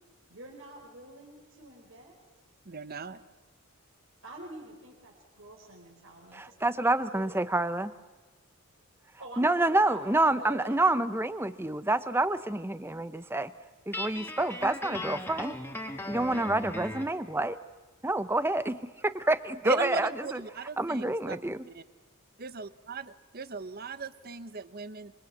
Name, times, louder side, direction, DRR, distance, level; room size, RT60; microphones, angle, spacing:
voice 1, 0.3-2.2 4.2-7.4 9.2-11.1, right 1 dB, 60° right, -2 dB, 4.4 m, -47 dB
voice 2, 2.7-3.2 19.6-21.4 21.7-21.8 22.4-25.1, right 5 dB, 45° right, 14 dB, 0.9 m, -37 dB
voice 3, 6.3-7.9 9.4-13.5 13.9-15.6 16.1-17.6 18.0-20.4 20.8-21.6, right 2 dB, 10° right, 13 dB, 0.8 m, -28 dB
Guitar, 13.9-17.2, left 1 dB, 10° left, 1.7 m, -38 dB
26.0 x 24.5 x 8.4 m, 1.2 s
head